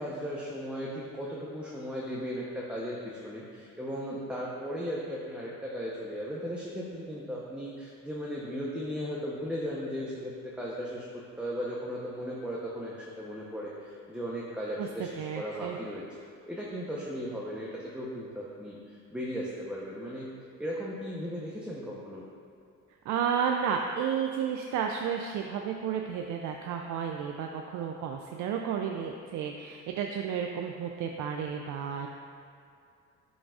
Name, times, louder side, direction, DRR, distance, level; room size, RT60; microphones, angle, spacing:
voice 1, 0.0-11.1 11.4-16.0 16.5-20.3 20.6-22.3, equal, 5° right, -5 dB, 0.8 m, -36 dB
voice 2, 15.2-15.8 23.1-32.1, right 7 dB, 70° right, 2 dB, 0.5 m, -32 dB
11.0 x 3.9 x 2.4 m, 2.4 s
supercardioid pair, 75°, 30 cm